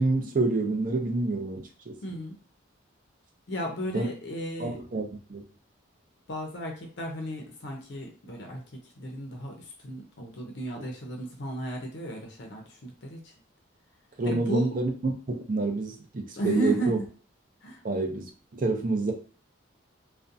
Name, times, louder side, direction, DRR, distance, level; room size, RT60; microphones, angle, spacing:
voice 1, 0.0-1.9 3.9-4.1 4.6-5.4 10.8-10.9 14.2-17.0 17.8-19.1, right 3 dB, 40° right, 3 dB, 0.5 m, -28 dB
voice 2, 2.0-2.4 3.5-4.8 6.3-8.6 9.0-9.5 9.8-13.2 14.2-14.7 16.4-17.1 17.6-17.8, right 1 dB, 60° left, 2 dB, 0.5 m, -34 dB
2.4 x 2.2 x 2.6 m, 0.40 s
head